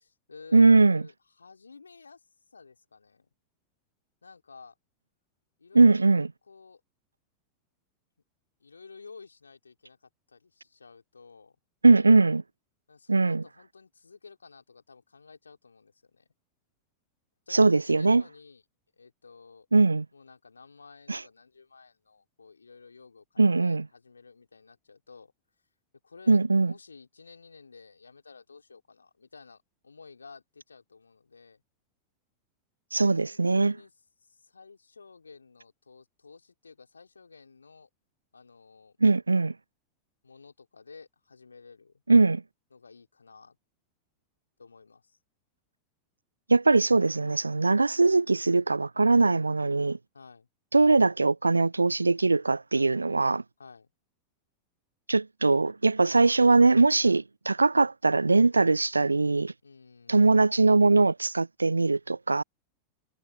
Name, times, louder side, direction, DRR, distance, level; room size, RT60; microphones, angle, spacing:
voice 1, 0.0-3.3 4.2-4.7 5.6-6.8 8.6-11.6 12.9-16.3 17.5-18.6 19.0-19.7 20.1-25.3 26.0-31.6 33.1-33.9 34.2-37.9 38.3-39.0 40.2-42.0 42.7-43.6 44.6-45.2 50.1-50.5 53.6-53.9 59.6-60.3, left 4 dB, 75° left, 3.4 m, -52 dB
voice 2, 0.5-1.0 5.7-6.3 11.8-12.4 13.1-13.4 17.5-18.2 19.7-20.1 21.1-21.2 23.4-23.8 26.3-26.7 32.9-33.7 39.0-39.5 42.1-42.4 46.5-50.0 50.7-53.4 55.1-59.5 60.1-62.4, right 3 dB, 80° right, 0.3 m, -21 dB
figure-of-eight pair, 90°, 0 cm